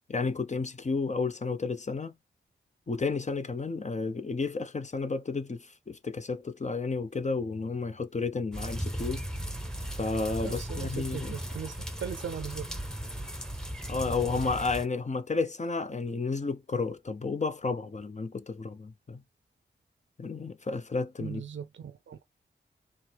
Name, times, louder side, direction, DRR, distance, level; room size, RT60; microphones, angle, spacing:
voice 1, 0.1-2.1 2.9-9.2 9.9-11.3 13.9-19.2 20.2-21.4, left 4 dB, 40° left, 0.8 m, -32 dB
sound 1, 8.5-14.9, right 1 dB, 5° left, 1.2 m, -36 dB
voice 2, 10.4-12.7 21.2-22.2, right 7 dB, 85° right, 0.6 m, -39 dB
4.8 x 3.2 x 3.4 m
cardioid pair, 55°, 19 cm